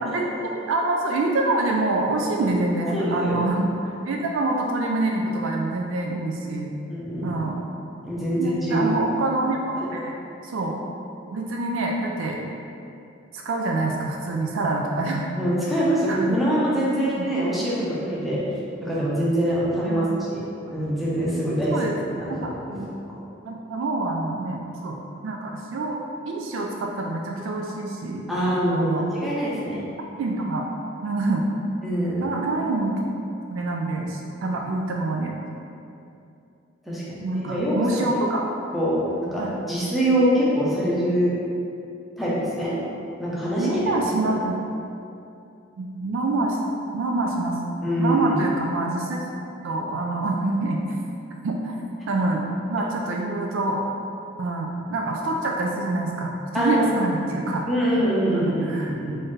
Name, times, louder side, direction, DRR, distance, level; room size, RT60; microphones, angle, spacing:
voice 1, 0.0-6.7 7.2-7.6 8.4-10.1 10.4-10.8 11.3-12.4 13.3-15.4 16.1-16.4 17.2-17.3 19.9-20.1 21.7-22.0 22.3-22.9 23.4-26.0 26.3-28.2 28.7-29.0 30.2-30.7 31.0-31.5 32.2-32.9 33.5-35.3 37.2-38.5 39.4-39.6 43.6-44.6 45.8-46.6 46.9-47.6 48.0-49.2 49.6-51.0 51.4-51.8 52.1-53.8 54.4-57.6 58.3-58.9, right 2 dB, 70° right, 0 dB, 0.3 m, -26 dB
voice 2, 2.9-3.5 6.9-7.4 8.0-8.9 9.8-9.9 15.4-18.4 18.8-20.4 20.7-22.8 28.3-29.8 31.8-32.3 36.8-38.1 38.7-39.0 39.3-41.3 42.2-42.7 43.2-43.9 44.2-44.3 47.8-48.4 56.5-57.0 57.7-59.2, equal, ahead, -8 dB, 0.7 m, -24 dB
3.8 x 2.6 x 3.3 m, 2.6 s
head